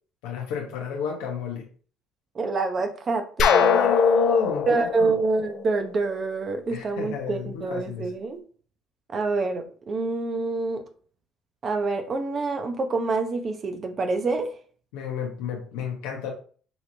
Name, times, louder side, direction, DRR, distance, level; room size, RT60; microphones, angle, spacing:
voice 1, 0.2-1.6 3.6-5.1 6.7-8.1 14.9-16.3, left 5 dB, 85° left, 0 dB, 1.0 m, -28 dB
voice 2, 2.3-3.9 4.7-8.4 9.1-10.8 11.6-14.5, right 3 dB, 40° right, 6 dB, 0.8 m, -27 dB
sound 1, 3.4-6.2, left 7 dB, 60° left, 0.6 m, -23 dB
5.5 x 3.0 x 2.8 m, 0.42 s
supercardioid pair, 85°, 0 cm